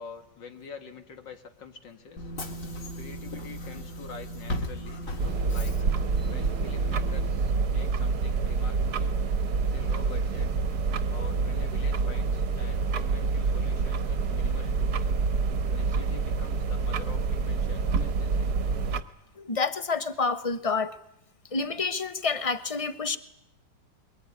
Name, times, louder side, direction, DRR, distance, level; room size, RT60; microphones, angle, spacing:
voice 1, 0.0-2.3 3.0-5.1 5.5-5.9 6.3-9.2 9.6-10.5 11.1-15.1 15.7-18.6, left 5 dB, 65° left, 7 dB, 2.5 m, -46 dB
Bus / Engine, 2.2-7.3, equal, 45° left, 2.4 m, -37 dB
sound 1, 5.2-19.0, right 4 dB, 55° right, 1.7 m, -27 dB
voice 2, 19.4-20.9 21.5-23.2, left 4 dB, 25° left, 11 dB, 0.9 m, -28 dB
23.5 x 20.5 x 9.6 m, 0.81 s
omnidirectional pair, 2.1 m